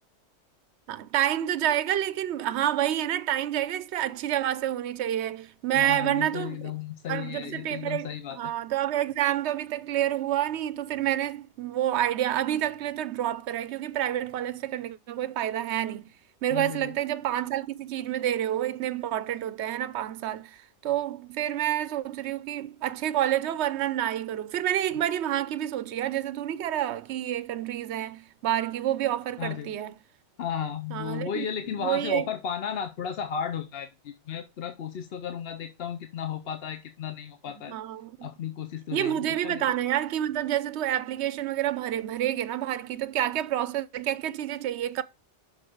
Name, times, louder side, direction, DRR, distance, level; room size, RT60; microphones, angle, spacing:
voice 1, 0.9-6.6 7.1-16.1 16.4-30.0 30.9-31.5 31.8-32.3 37.7-38.3 38.9-45.0, right 12 dB, 70° right, 0.9 m, -28 dB
voice 2, 5.7-8.4 16.5-16.9 29.4-29.7 30.4-37.7 38.2-39.6, left 8 dB, 60° left, 0.9 m, -34 dB
6.5 x 6.0 x 6.3 m
omnidirectional pair, 1.2 m